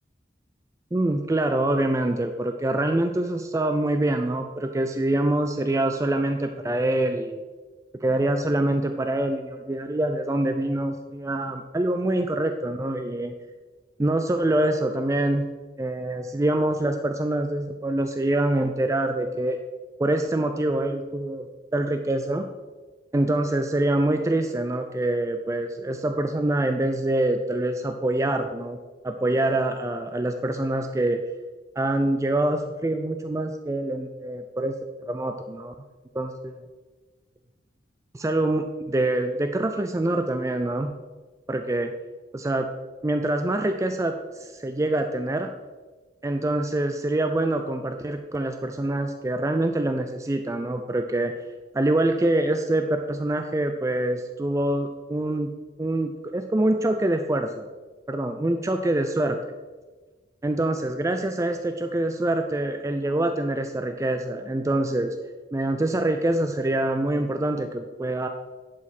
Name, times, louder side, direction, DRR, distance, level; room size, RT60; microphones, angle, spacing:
voice 1, 0.9-7.4 8.0-13.3 14.0-15.4 15.8-19.6 20.0-21.5 21.7-22.5 23.1-28.8 29.0-31.2 31.8-34.7 35.1-35.7 36.1-36.6 38.1-40.9 41.5-41.9 42.3-42.7 43.0-45.5 46.2-51.3 51.7-55.5 55.8-57.7 58.1-59.4 60.4-65.2 65.5-68.3, right 1 dB, 15° right, 6 dB, 0.4 m, -25 dB
11.0 x 5.0 x 4.2 m, 1.3 s
head